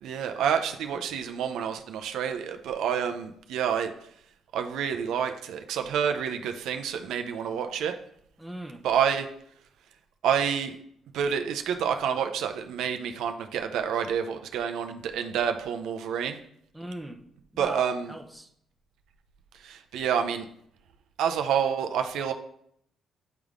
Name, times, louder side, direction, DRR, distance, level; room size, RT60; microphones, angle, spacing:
voice 1, 0.0-4.1 4.5-8.0 8.8-9.3 10.2-10.8 11.1-16.4 17.6-18.1 19.5-20.5 21.2-22.3, right 8 dB, 85° right, 6 dB, 0.6 m, -28 dB
voice 2, 8.4-8.8 16.7-17.2 17.5-18.5, right 1 dB, 5° right, 3 dB, 0.8 m, -39 dB
9.3 x 3.5 x 3.7 m, 0.68 s
cardioid pair, 90°, 0 cm